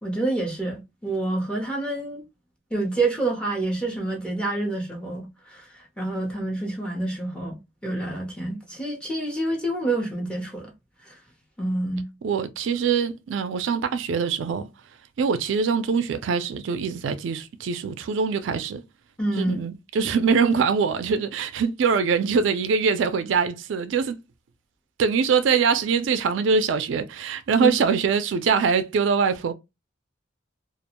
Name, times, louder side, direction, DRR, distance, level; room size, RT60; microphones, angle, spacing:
voice 1, 0.0-2.2 2.7-5.7 6.0-10.7 11.6-12.1 19.2-19.6 27.6-27.7, right 2 dB, 5° left, 0.7 m, -27 dB
voice 2, 12.2-14.7 15.2-18.8 19.4-24.2 25.0-29.5, right 5 dB, 70° right, 0.3 m, -23 dB
2.4 x 2.1 x 2.9 m
head